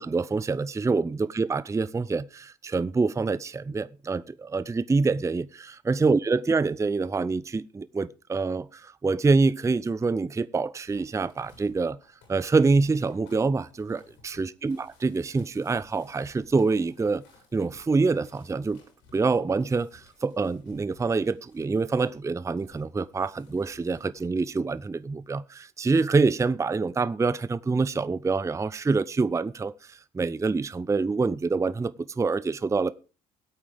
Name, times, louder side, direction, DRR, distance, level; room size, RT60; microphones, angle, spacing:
voice 1, 0.0-12.0 12.3-14.8 15.0-17.2 17.5-18.8 19.1-32.9, right 4 dB, 15° right, 0.5 m, -26 dB
Find something in box, 10.8-22.2 22.6-25.0 25.3-25.4, left 3 dB, 70° left, 7.0 m, -58 dB
21.0 x 8.4 x 3.5 m
hypercardioid pair, 55°, 21 cm